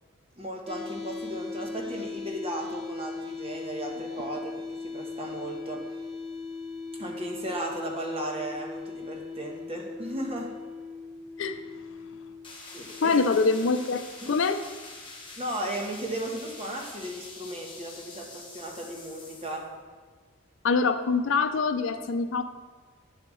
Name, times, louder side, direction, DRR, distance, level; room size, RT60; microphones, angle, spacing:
voice 1, 0.4-5.8 7.0-10.5 12.7-13.1 14.2-14.4 15.4-19.6, right 1 dB, 30° right, 0 dB, 1.1 m, -35 dB
sound 1, 0.7-14.6, left 4 dB, ahead, 0.9 m, -39 dB
sound 2, 12.4-19.6, left 3 dB, 25° left, 1.1 m, -45 dB
voice 2, 13.0-14.6 20.6-22.4, left 4 dB, 65° left, 9 dB, 0.5 m, -24 dB
8.6 x 7.3 x 3.1 m, 1.5 s
head